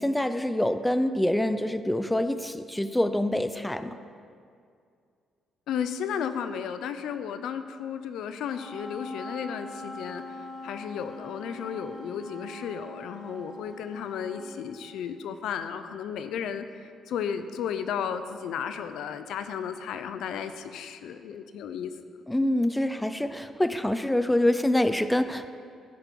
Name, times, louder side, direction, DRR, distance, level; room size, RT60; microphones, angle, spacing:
voice 1, 0.0-4.0 22.3-25.5, left 1 dB, 10° left, 11 dB, 0.5 m, -26 dB
voice 2, 5.7-10.2 10.6-16.6 17.1-21.9, left 8 dB, 80° left, 10 dB, 0.6 m, -34 dB
Wind instrument woodwind instrument, 8.5-14.6, left 2 dB, 50° left, 1.4 m, -43 dB
15.5 x 5.2 x 6.1 m, 2.3 s
cardioid pair, 90°, 0 cm